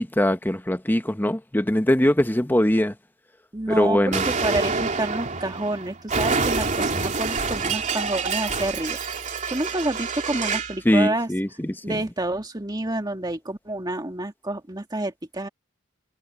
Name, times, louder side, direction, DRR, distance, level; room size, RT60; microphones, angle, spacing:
voice 1, 0.0-2.9 3.7-4.2 10.8-11.7, left 1 dB, 10° left, 1.0 m, -21 dB
voice 2, 3.5-9.2 9.5-11.3 11.8-15.5, right 2 dB, 20° right, 2.0 m, -28 dB
Explosion, 4.1-10.8, right 4 dB, 35° right, 3.2 m, -27 dB
head